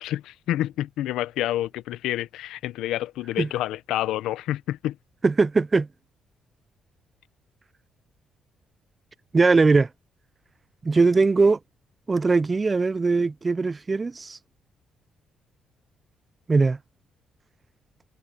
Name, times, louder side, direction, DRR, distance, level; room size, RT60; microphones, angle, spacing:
voice 1, 0.0-5.0, left 13 dB, 90° left, 0.8 m, -28 dB
voice 2, 5.2-5.9 9.3-9.9 10.8-11.6 12.1-14.4 16.5-16.8, right 4 dB, 30° right, 0.4 m, -20 dB
cardioid pair, 90°, 0 cm